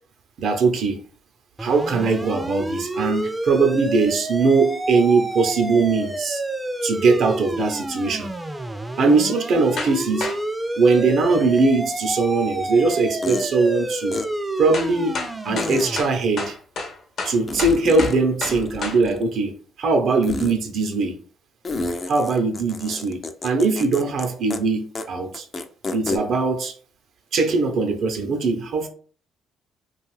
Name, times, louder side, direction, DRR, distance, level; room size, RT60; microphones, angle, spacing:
voice 1, 0.4-1.0 1.6-6.4 6.8-8.3 9.0-10.3 10.8-14.2 14.6-15.2 15.4-16.5 17.2-21.2 22.1-25.5 25.9-26.7 27.3-28.9, right 4 dB, 65° right, 0.6 m, -21 dB
sound 1, 1.6-16.0, right 1 dB, 15° right, 0.4 m, -29 dB
sound 2, 9.8-10.0 10.2-10.4 12.9-13.0 14.7-19.0, left 3 dB, 65° left, 0.9 m, -30 dB
sound 3, 12.3-12.4 13.2-13.5 14.1-14.2 15.6-15.9 17.5-18.2 18.4-19.3 20.2-20.6 21.6-24.3 24.5-24.6 25.0-25.1 25.3-26.2, left 3 dB, 40° left, 0.4 m, -30 dB
2.5 x 2.3 x 3.1 m
supercardioid pair, 60°, 0 cm